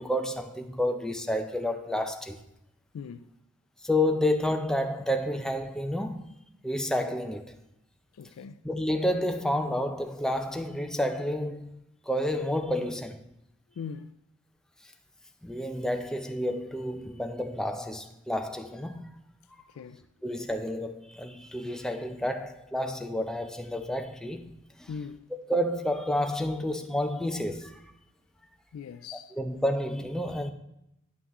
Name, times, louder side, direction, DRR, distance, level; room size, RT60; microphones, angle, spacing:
voice 1, 0.0-2.4 3.8-6.3 6.6-7.5 8.6-11.8 12.1-13.2 15.4-19.0 20.2-24.5 24.8-24.9 25.5-27.8 29.3-30.5, left 1 dB, 5° left, 0.4 m, -30 dB
voice 2, 2.9-3.3 8.1-8.6 13.8-14.2 19.7-20.1 24.9-25.3 28.7-29.3, left 6 dB, 75° left, 0.3 m, -40 dB
9.5 x 5.8 x 3.0 m
head